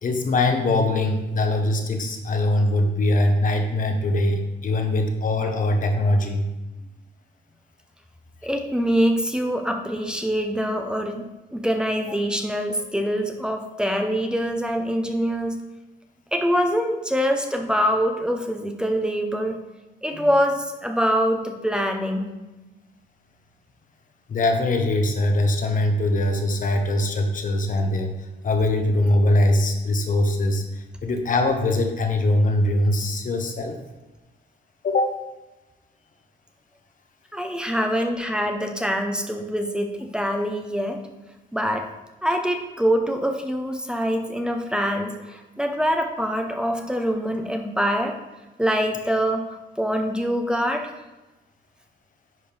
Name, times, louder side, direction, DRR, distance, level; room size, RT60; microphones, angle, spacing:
voice 1, 0.0-6.4 20.2-20.3 24.3-28.1 28.4-33.8 34.8-35.1, left 1 dB, 50° left, 5 dB, 1.1 m, -22 dB
voice 2, 8.4-15.6 16.3-19.6 20.0-22.3 37.3-41.0 41.5-41.9 42.2-48.2 48.6-50.9, equal, 5° right, 4 dB, 0.8 m, -24 dB
10.5 x 4.2 x 3.4 m, 1.1 s
cardioid pair, 95°, 18 cm